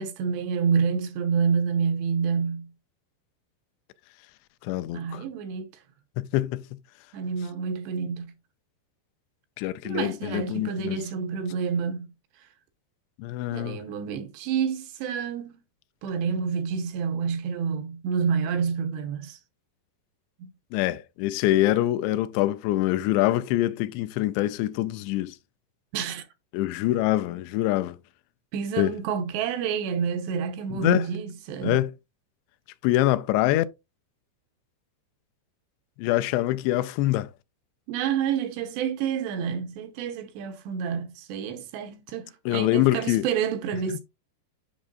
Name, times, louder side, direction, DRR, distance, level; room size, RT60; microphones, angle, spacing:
voice 1, 0.0-2.7 4.9-5.7 7.1-8.3 9.8-12.1 13.5-15.6 16.0-19.4 20.4-20.5 25.9-26.3 28.5-31.8 37.9-44.0, right 6 dB, 80° right, 2.9 m, -28 dB
voice 2, 4.6-5.2 6.2-6.6 9.6-11.0 13.2-13.8 20.7-25.4 26.5-28.0 28.8-28.9 30.7-31.1 31.6-31.9 32.8-33.7 36.0-37.3 42.5-43.3, left 15 dB, 85° left, 2.7 m, -24 dB
8.5 x 6.3 x 2.5 m
omnidirectional pair, 5.0 m